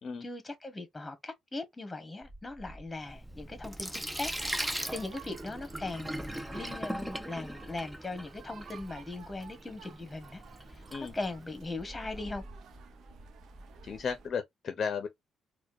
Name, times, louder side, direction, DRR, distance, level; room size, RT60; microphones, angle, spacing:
voice 1, 0.2-10.4 10.7-10.8 11.1-12.4, left 2 dB, 15° left, 1.3 m, -39 dB
sound 1, 2.2-14.3, right 1 dB, 35° right, 1.9 m, -53 dB
Sink (filling or washing), 3.0-11.8, equal, 5° right, 0.5 m, -40 dB
sound 2, 4.1-14.3, right 8 dB, 70° right, 0.6 m, -54 dB
voice 2, 13.8-15.1, left 6 dB, 55° left, 0.6 m, -34 dB
4.2 x 2.2 x 2.6 m
cardioid pair, 90°, 0 cm